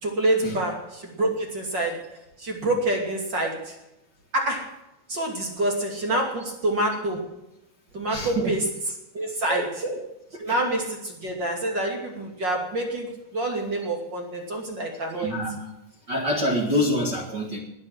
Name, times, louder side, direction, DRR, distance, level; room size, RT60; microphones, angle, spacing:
voice 1, 0.0-2.0 2.4-3.7 4.3-4.7 5.1-7.3 7.9-8.7 9.1-9.7 10.4-15.4, right 1 dB, 30° right, 1 dB, 2.5 m, -27 dB
voice 2, 8.1-8.5 9.5-10.0 10.3-10.6 15.1-15.6 16.1-17.6, equal, 55° right, 0 dB, 1.2 m, -26 dB
20.0 x 7.6 x 7.7 m, 0.92 s
omnidirectional pair, 5.1 m